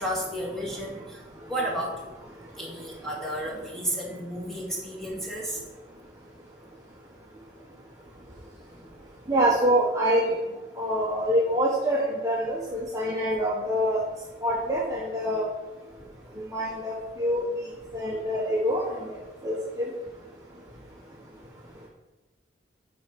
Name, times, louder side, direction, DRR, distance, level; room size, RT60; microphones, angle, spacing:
voice 1, 0.0-2.1 2.6-5.6, equal, ahead, -4 dB, 1.9 m, -32 dB
voice 2, 9.3-10.4 10.8-14.0 14.4-15.4 16.4-17.5 17.9-19.1 19.4-19.9, equal, 20° right, -5 dB, 1.1 m, -25 dB
8.9 x 4.3 x 5.3 m, 1.2 s
head